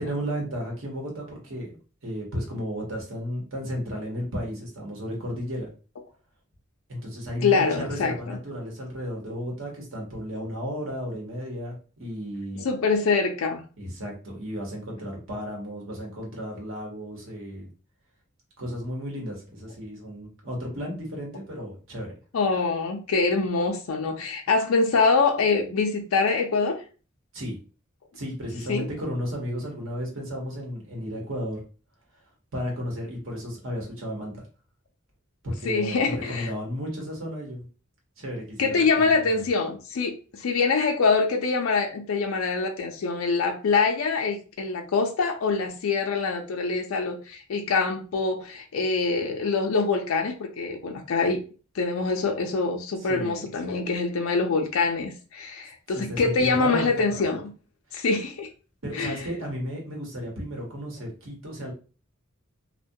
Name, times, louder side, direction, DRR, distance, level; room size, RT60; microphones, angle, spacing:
voice 1, 0.0-1.8 2.0-5.7 6.9-11.7 12.0-12.7 13.8-17.7 18.6-22.1 27.3-27.6 28.1-31.6 32.5-34.3 35.4-37.7 38.2-38.8 39.2-39.3 53.0-53.4 55.9-57.2 58.8-61.7, equal, 65° right, -1 dB, 0.9 m, -33 dB
voice 2, 7.4-8.4 12.6-13.6 22.3-26.8 28.7-28.9 35.6-36.5 38.6-51.4 51.7-57.5 57.9-58.5 58.9-59.2, left 4 dB, 85° left, 3 dB, 0.4 m, -24 dB
2.2 x 2.1 x 2.6 m, 0.35 s
head